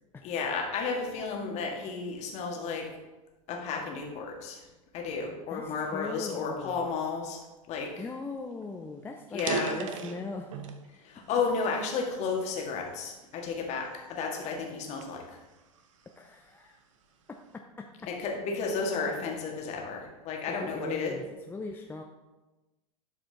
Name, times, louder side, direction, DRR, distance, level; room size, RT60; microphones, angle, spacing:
voice 1, 0.2-2.9 3.5-4.6 4.9-7.4 7.7-8.0 9.3-9.8 11.0-15.2 18.1-21.1, left 4 dB, 40° left, 1 dB, 1.7 m, -32 dB
voice 2, 5.5-6.9 8.0-10.7 16.2-16.8 17.5-18.1 20.5-22.0, left 3 dB, 10° left, 3 dB, 0.5 m, -40 dB
sound 1, 8.2-8.3 8.6-8.7 9.2-10.9 11.4-12.7 13.3-13.5 14.1-16.2, right 6 dB, 60° right, 0.9 m, -37 dB
11.5 x 5.0 x 3.5 m, 1.1 s
figure-of-eight pair, 85°, 18 cm